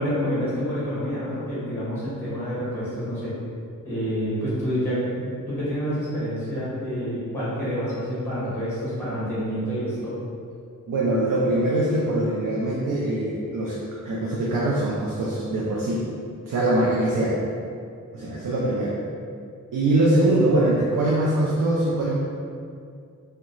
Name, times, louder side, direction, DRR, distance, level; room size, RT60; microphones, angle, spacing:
voice 1, 0.0-3.3 3.8-10.1, equal, 5° left, -10 dB, 1.2 m, -28 dB
voice 2, 10.9-13.8 14.0-16.0 16.4-17.4 18.1-19.0 19.7-22.2, right 1 dB, 70° right, -6 dB, 0.5 m, -22 dB
2.9 x 2.2 x 3.8 m, 2.4 s
wide cardioid pair, 180°, 33 cm